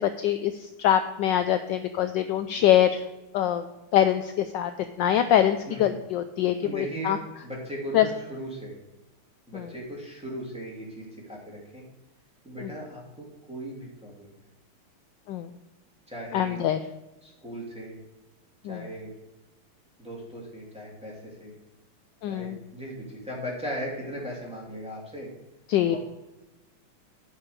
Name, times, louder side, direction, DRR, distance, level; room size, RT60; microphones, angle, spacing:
voice 1, 0.0-3.0 3.3-4.7 5.0-7.2 7.9-8.1 9.5-9.7 12.6-12.7 15.3-15.5 16.3-16.8 18.6-18.9 22.2-22.6 25.7-26.0, left 11 dB, 75° left, 9 dB, 1.1 m, -24 dB
voice 2, 6.6-7.2 7.4-8.8 9.5-11.8 12.4-14.4 16.1-16.6 17.2-18.0 18.7-19.1 20.0-21.6 22.3-25.3 25.8-26.0, right 1 dB, 5° right, -5 dB, 2.8 m, -38 dB
10.5 x 5.6 x 6.7 m, 1.0 s
omnidirectional pair, 2.4 m